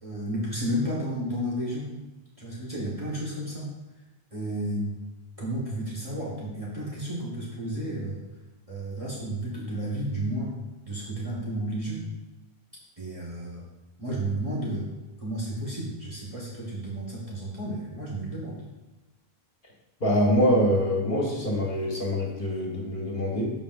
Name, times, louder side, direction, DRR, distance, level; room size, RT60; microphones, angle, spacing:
voice 1, 0.0-1.9 2.4-3.7 4.3-4.9 5.4-8.2 8.7-10.6 10.8-12.0 13.0-13.6 14.0-14.9 15.2-18.6, right 1 dB, 35° right, -6 dB, 1.6 m, -32 dB
voice 2, 20.0-23.5, equal, 55° left, -2 dB, 1.6 m, -24 dB
13.0 x 4.9 x 2.5 m, 1.1 s
omnidirectional pair, 1.0 m